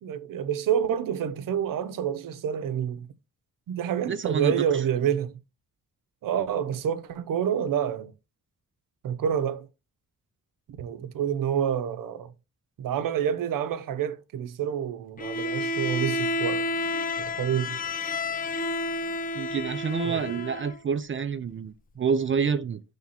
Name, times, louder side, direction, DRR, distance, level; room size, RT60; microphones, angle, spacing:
voice 1, 0.0-3.1 3.7-5.4 6.2-8.1 9.0-9.7 10.8-12.3 12.8-16.7 17.2-17.8 20.0-20.4, right 9 dB, 80° right, 0.8 m, -28 dB
voice 2, 4.1-4.7 19.3-22.8, right 6 dB, 40° right, 0.5 m, -28 dB
Bowed string instrument, 15.2-20.8, left 2 dB, 25° left, 0.4 m, -30 dB
7.2 x 3.5 x 4.2 m
cardioid pair, 115°, 32 cm